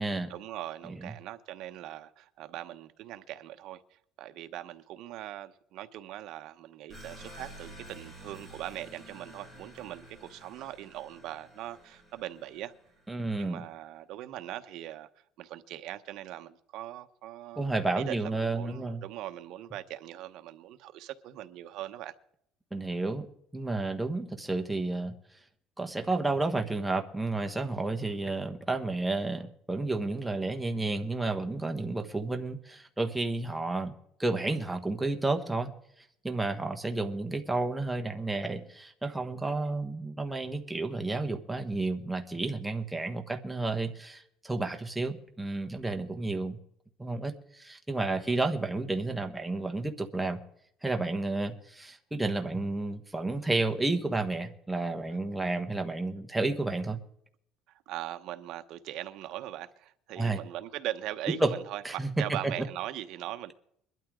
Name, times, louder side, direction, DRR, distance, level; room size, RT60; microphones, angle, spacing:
voice 1, 0.3-12.7 13.4-15.1 15.4-17.7 18.0-22.1 57.9-63.5, right 13 dB, 60° right, 1.0 m, -40 dB
sound 1, 6.9-13.2, right 1 dB, 15° left, 6.1 m, -50 dB
voice 2, 13.1-13.6 17.6-19.0 22.7-23.3 23.5-25.1 25.8-33.9 34.2-35.7 36.2-46.6 47.0-50.4 50.8-57.0 60.2-60.4 61.4-61.5 61.8-62.1 62.4-62.5, right 2 dB, 5° right, 1.2 m, -31 dB
22.0 x 12.5 x 3.7 m
cardioid pair, 160°, 0 cm